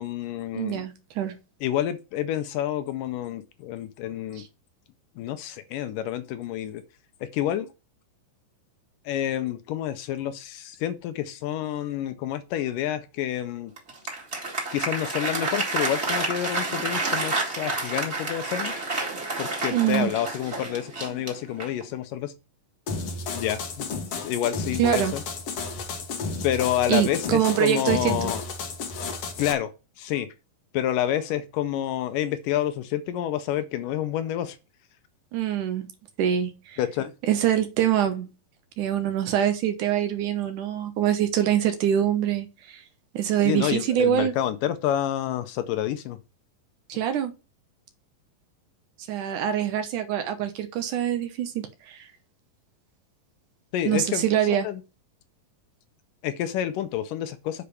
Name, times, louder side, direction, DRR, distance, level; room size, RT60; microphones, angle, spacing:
voice 1, 0.0-0.9 1.6-4.4 5.2-6.8 7.3-7.7 9.1-13.7 14.7-18.7 19.4-22.3 23.3-23.9 24.2-25.2 26.4-28.4 29.4-30.3 30.7-34.6 36.8-37.1 43.4-46.2 53.7-54.3 54.6-54.8 56.2-57.7, left 11 dB, 75° left, 2.2 m, -28 dB
voice 2, 0.5-1.4 4.4-4.5 19.7-20.1 24.8-25.2 26.9-28.3 35.3-35.9 36.2-36.8 37.3-38.3 38.8-42.8 43.1-44.3 46.9-47.3 49.1-52.1 53.9-54.7, right 10 dB, 70° right, 2.3 m, -24 dB
Applause, 13.8-21.9, right 2 dB, 20° right, 1.9 m, -29 dB
sound 1, 22.9-29.5, left 4 dB, 60° left, 1.8 m, -32 dB
6.9 x 4.9 x 6.8 m
omnidirectional pair, 4.1 m